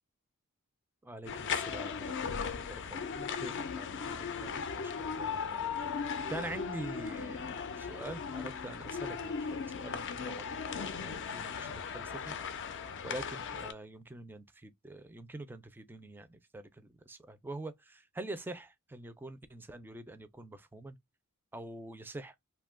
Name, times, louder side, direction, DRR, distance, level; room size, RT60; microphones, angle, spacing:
voice 1, 1.0-5.9 6.3-10.5 10.7-12.3 13.0-16.7 17.1-21.0 21.5-22.3, right 2 dB, 10° right, 0.3 m, -45 dB
sound 1, 1.3-13.7, left 6 dB, 55° left, 0.4 m, -37 dB
2.7 x 2.2 x 3.4 m
head